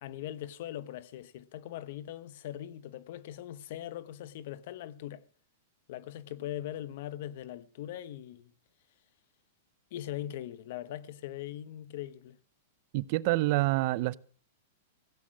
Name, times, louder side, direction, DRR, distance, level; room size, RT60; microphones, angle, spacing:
voice 1, 0.0-5.2 5.9-8.5 9.9-12.4, left 12 dB, 55° left, 1.0 m, -41 dB
voice 2, 12.9-14.2, right 19 dB, 45° right, 0.6 m, -27 dB
16.5 x 8.4 x 6.2 m
supercardioid pair, 155°, 0 cm